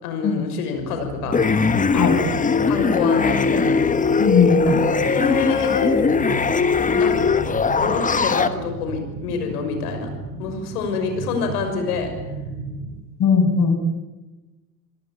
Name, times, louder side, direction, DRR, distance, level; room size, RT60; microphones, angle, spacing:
voice 1, 0.0-1.4 1.9-2.0 2.7-3.8 4.7-4.8 5.1-5.9 7.0-7.1 7.8-10.1 10.4-12.1, left 5 dB, 70° left, 6 dB, 6.3 m, -26 dB
sound 1, 0.7-13.0, right 3 dB, 35° right, 5.3 m, -35 dB
sound 2, 1.3-8.5, left 4 dB, 15° left, 1.3 m, -20 dB
voice 2, 4.2-4.8 13.2-13.7, left 5 dB, 35° left, 7 dB, 6.3 m, -18 dB
28.0 x 18.0 x 8.6 m, 1.1 s
figure-of-eight pair, 75°, 48 cm